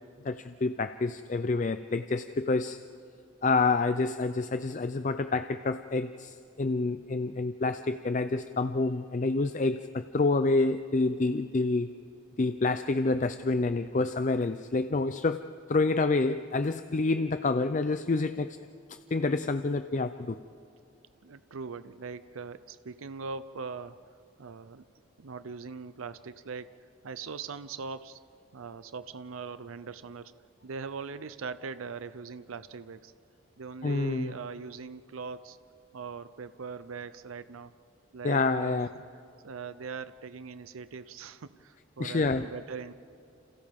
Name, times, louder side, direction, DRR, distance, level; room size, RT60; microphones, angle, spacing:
voice 1, 0.2-2.8 3.4-11.9 12.4-18.5 18.9-20.4 33.8-34.4 38.2-38.9 42.0-42.5, left 3 dB, 35° left, 10 dB, 0.4 m, -28 dB
voice 2, 21.2-24.0 24.4-24.9 25.2-26.7 27.0-28.2 28.5-30.3 30.6-33.1 33.6-35.6 35.9-37.7 38.1-39.0 39.4-42.9, right 5 dB, 85° right, 13 dB, 0.6 m, -41 dB
30.0 x 27.5 x 3.6 m, 2.6 s
head